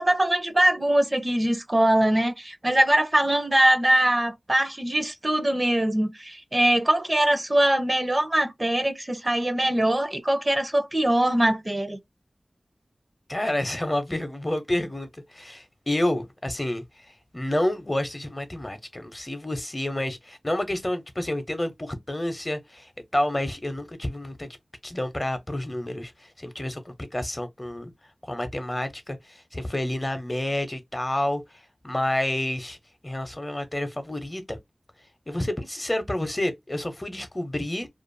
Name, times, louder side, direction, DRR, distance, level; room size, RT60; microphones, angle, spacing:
voice 1, 0.0-12.0, right 1 dB, 35° right, 0.6 m, -22 dB
voice 2, 13.3-16.8 17.3-24.5 24.8-27.9 28.2-32.8 33.0-34.6 35.3-37.9, left 1 dB, 30° left, 0.8 m, -29 dB
2.5 x 2.4 x 2.5 m
wide cardioid pair, 50°, 0 cm